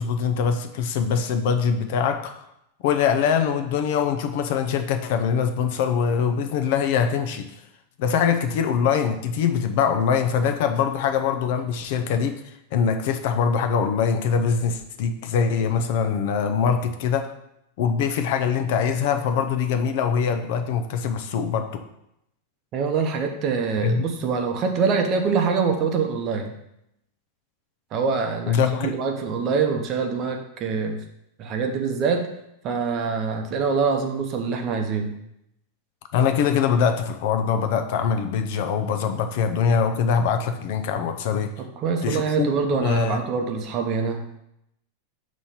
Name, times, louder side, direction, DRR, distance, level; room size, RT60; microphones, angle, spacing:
voice 1, 0.0-2.4 2.8-7.5 8.0-17.3 17.8-21.8 23.8-24.0 28.5-28.9 36.1-41.5 42.0-42.5 42.8-43.2, left 6 dB, 55° left, 8 dB, 0.6 m, -23 dB
voice 2, 22.7-26.5 27.9-31.0 31.4-32.3 32.6-35.2 41.8-44.4, right 5 dB, 30° right, 4 dB, 0.8 m, -24 dB
6.9 x 3.1 x 5.6 m, 0.80 s
supercardioid pair, 160°, 0 cm